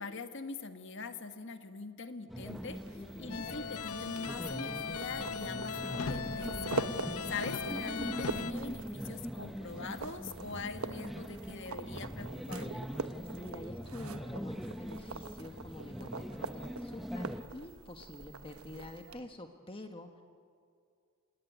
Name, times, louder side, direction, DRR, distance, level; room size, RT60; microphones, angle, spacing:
voice 1, 0.0-6.8 7.3-12.9, left 4 dB, 55° left, 8 dB, 1.6 m, -43 dB
sound 1, 2.3-17.4, equal, ahead, 0.8 m, -42 dB
sound 2, 2.4-19.2, right 3 dB, 80° right, 1.2 m, -44 dB
voice 2, 2.9-3.4 13.2-20.2, left 1 dB, 25° left, 5 dB, 1.4 m, -48 dB
sound 3, 3.3-8.5, left 6 dB, 85° left, 0.7 m, -39 dB
27.5 x 20.0 x 9.5 m, 2.3 s
head